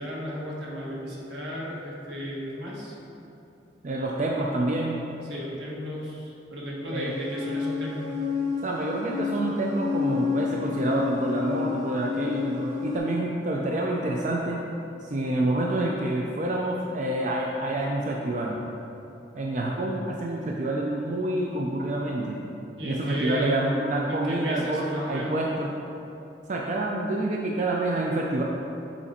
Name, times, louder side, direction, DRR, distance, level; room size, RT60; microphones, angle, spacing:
voice 1, 0.0-2.9 5.3-8.1 22.8-23.6 24.1-25.4, equal, 85° right, -5 dB, 1.5 m, -34 dB
voice 2, 3.8-5.1 6.9-7.2 8.6-14.6 15.0-18.6 19.3-22.4 22.8-25.7 26.5-28.4, right 1 dB, 45° right, -1 dB, 0.4 m, -27 dB
sound 1, 7.1-13.0, left 6 dB, 20° left, 1.5 m, -30 dB
7.2 x 4.2 x 4.2 m, 2.8 s
head